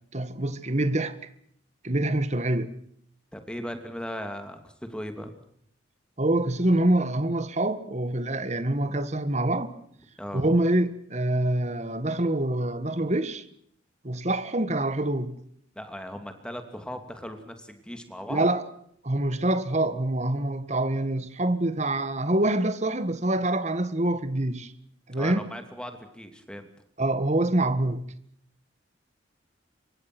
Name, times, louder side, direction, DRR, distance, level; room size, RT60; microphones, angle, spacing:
voice 1, 0.1-1.2 1.8-2.7 6.2-9.7 10.3-13.4 14.0-15.4 18.3-18.6 19.0-24.7 25.1-25.5 27.0-28.1, right 1 dB, 35° right, 1.7 m, -25 dB
voice 2, 3.3-5.3 10.2-10.4 15.8-18.5 25.2-26.7, equal, 5° left, 2.7 m, -38 dB
27.0 x 24.0 x 6.2 m
head